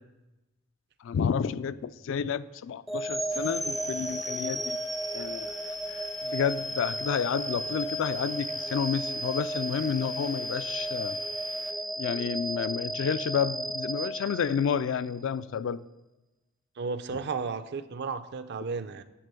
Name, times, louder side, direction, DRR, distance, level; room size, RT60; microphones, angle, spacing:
voice 1, 1.0-4.8 5.1-11.2 12.0-15.8, left 7 dB, 65° left, 15 dB, 0.3 m, -30 dB
sound 1, 2.9-15.0, right 1 dB, ahead, 0.4 m, -34 dB
sound 2, 3.3-11.7, left 5 dB, 85° left, 0.8 m, -52 dB
voice 2, 16.8-19.0, right 4 dB, 55° right, 12 dB, 0.5 m, -33 dB
10.0 x 3.7 x 6.8 m, 1.0 s
head